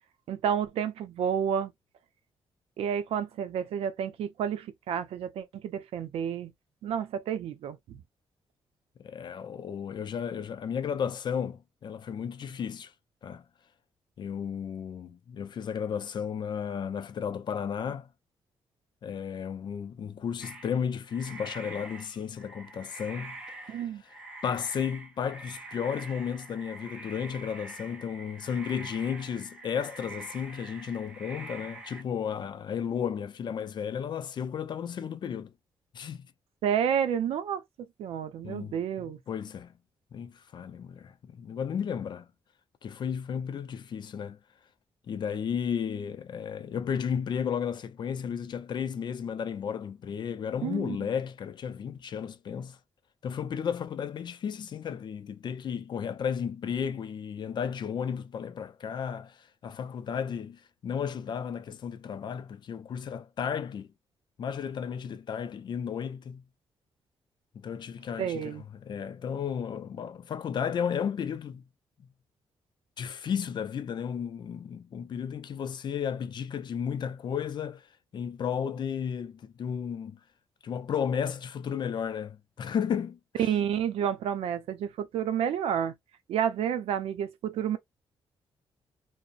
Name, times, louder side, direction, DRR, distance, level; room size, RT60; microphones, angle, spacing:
voice 1, 0.3-1.7 2.8-6.5 6.8-8.0 23.7-24.0 36.6-37.6 38.0-39.2 50.6-51.0 68.2-68.6 83.4-85.9 86.3-87.8, right 8 dB, 85° right, 0.5 m, -30 dB
voice 2, 9.0-12.9 13.2-13.4 14.2-18.1 19.0-23.4 23.6-23.8 24.4-35.5 35.9-36.3 38.4-39.7 40.1-42.3 42.8-44.4 45.1-52.8 53.2-63.9 64.4-66.4 67.5-71.6 73.0-77.9 78.1-80.2 80.6-83.2, left 7 dB, 50° left, 0.4 m, -33 dB
sound 1, 20.4-32.0, right 2 dB, 10° right, 0.8 m, -45 dB
2.4 x 2.0 x 2.5 m
cardioid pair, 105°, 10 cm